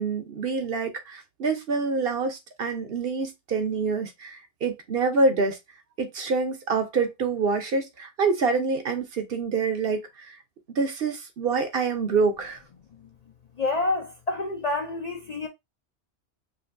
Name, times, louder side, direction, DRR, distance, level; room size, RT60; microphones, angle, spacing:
voice 1, 0.0-5.6 6.0-10.4 10.8-12.6, right 4 dB, 55° right, 0.9 m, -26 dB
voice 2, 13.6-15.5, left 2 dB, 50° left, 0.5 m, -28 dB
5.1 x 2.6 x 2.6 m
omnidirectional pair, 1.2 m